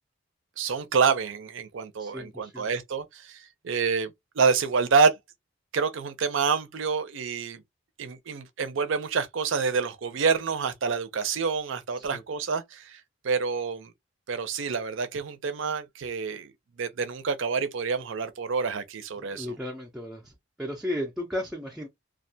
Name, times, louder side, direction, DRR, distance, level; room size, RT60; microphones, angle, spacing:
voice 1, 0.6-5.2 5.7-7.6 8.0-13.9 14.3-16.5 16.8-19.6, right 5 dB, 65° right, 0.5 m, -27 dB
voice 2, 2.0-2.7 12.0-12.2 19.2-20.3 20.6-21.9, left 1 dB, 5° right, 0.4 m, -34 dB
2.3 x 2.2 x 2.6 m
head